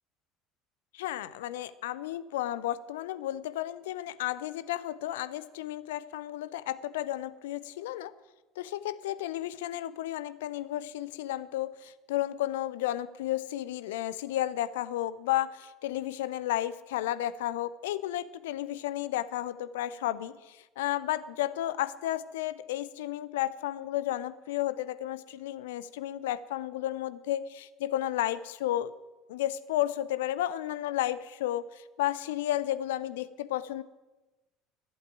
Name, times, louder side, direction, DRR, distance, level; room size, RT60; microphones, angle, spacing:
voice 1, 0.9-8.1 8.6-28.9 29.3-33.8, left 13 dB, 65° left, 15 dB, 0.5 m, -33 dB
12.0 x 8.0 x 9.0 m, 1.1 s
figure-of-eight pair, 65°, 0 cm